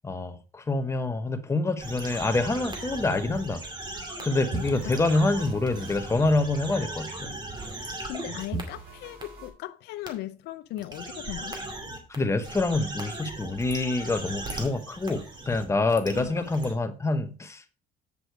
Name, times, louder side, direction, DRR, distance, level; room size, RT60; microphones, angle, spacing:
voice 1, 0.0-3.6 4.2-7.3 12.2-17.7, left 2 dB, 15° left, 1.0 m, -26 dB
sound 1, 1.8-8.6 9.2-9.3 10.1-10.2 10.8-12.2 12.4-16.7, right 2 dB, 25° right, 2.4 m, -38 dB
sound 2, 2.3-4.2 4.5-8.2 8.5-9.5, right 3 dB, 70° right, 5.4 m, -41 dB
voice 2, 4.5-5.0 7.8-11.6 16.1-16.5, left 14 dB, 80° left, 0.5 m, -38 dB
8.5 x 6.1 x 4.6 m
cardioid pair, 110°, 17 cm